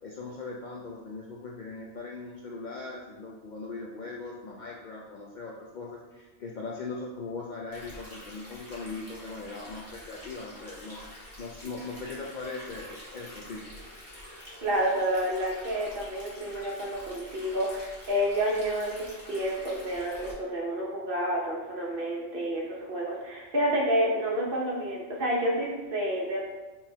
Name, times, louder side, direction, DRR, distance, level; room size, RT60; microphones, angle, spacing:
voice 1, 0.0-11.0 11.4-13.6, left 3 dB, 60° left, -2 dB, 0.5 m, -39 dB
Stream, 7.7-20.3, left 1 dB, 20° left, 1.2 m, -47 dB
voice 2, 14.6-26.4, equal, 55° right, -4 dB, 1.1 m, -29 dB
5.3 x 3.0 x 2.8 m, 1.2 s
omnidirectional pair, 1.2 m